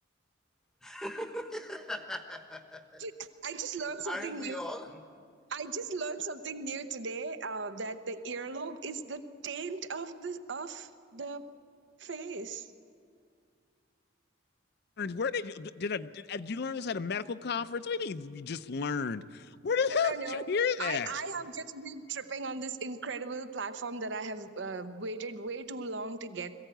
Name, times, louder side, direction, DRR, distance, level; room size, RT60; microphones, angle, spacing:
voice 1, 0.8-3.0 4.0-5.0 21.4-21.5, left 1 dB, 5° left, 7 dB, 1.0 m, -39 dB
voice 2, 3.0-4.6 5.5-11.4 12.0-12.7 19.9-20.4 20.8-26.6, right 4 dB, 65° right, 11 dB, 0.8 m, -37 dB
voice 3, 15.0-21.1, left 5 dB, 55° left, 13 dB, 0.5 m, -32 dB
21.5 x 15.0 x 9.1 m, 2.2 s
head